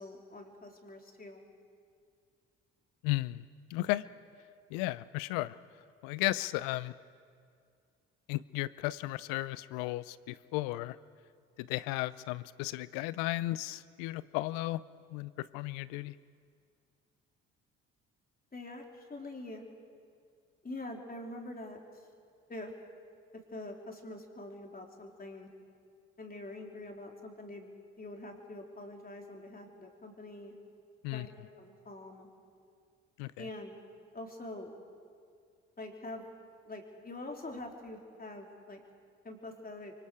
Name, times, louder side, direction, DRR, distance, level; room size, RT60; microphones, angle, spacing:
voice 1, 0.0-1.4 18.5-19.6 20.6-21.8 22.5-22.7 23.5-25.5 26.2-30.5 31.1-31.3 31.6-32.3 33.4-33.8 34.1-34.7 35.8-36.2 36.7-38.8 39.2-39.9, left 2 dB, 25° left, 1 dB, 3.6 m, -45 dB
voice 2, 3.0-3.4 3.7-4.0 4.7-5.6 6.0-6.9 8.3-11.0 11.6-14.8 15.1-16.2 31.0-31.3 33.2-33.5, left 18 dB, 75° left, 18 dB, 0.6 m, -34 dB
26.0 x 24.0 x 4.8 m, 2.2 s
hypercardioid pair, 50°, 34 cm